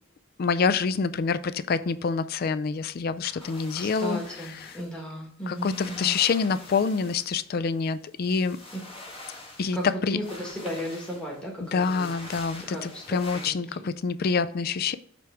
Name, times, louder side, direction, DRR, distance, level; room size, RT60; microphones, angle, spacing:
voice 1, 0.4-4.2 5.5-8.6 9.6-9.8 10.0-10.2 11.7-15.0, left 5 dB, 50° left, 0.4 m, -26 dB
voice 2, 3.2-6.1 9.7-12.1 12.7-13.9, equal, 5° left, 1.6 m, -36 dB
sound 1, 3.4-4.9 5.5-7.4 7.8-9.9 10.2-13.5, left 2 dB, 25° left, 1.5 m, -45 dB
7.7 x 3.5 x 4.7 m
head